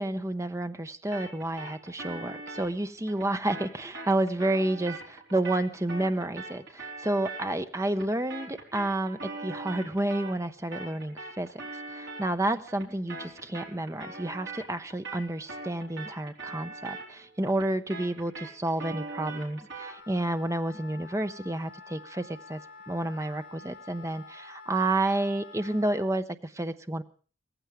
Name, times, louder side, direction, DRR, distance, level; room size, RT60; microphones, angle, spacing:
voice 1, 0.0-11.5 11.9-22.6 22.9-27.0, right 1 dB, 15° right, 9 dB, 0.7 m, -30 dB
sound 1, 1.1-10.5 10.7-20.0, right 3 dB, 60° right, 4.2 m, -42 dB
Wind instrument woodwind instrument, 19.8-26.1, left 4 dB, 45° left, 5.4 m, -48 dB
18.0 x 15.0 x 4.9 m, 0.41 s
head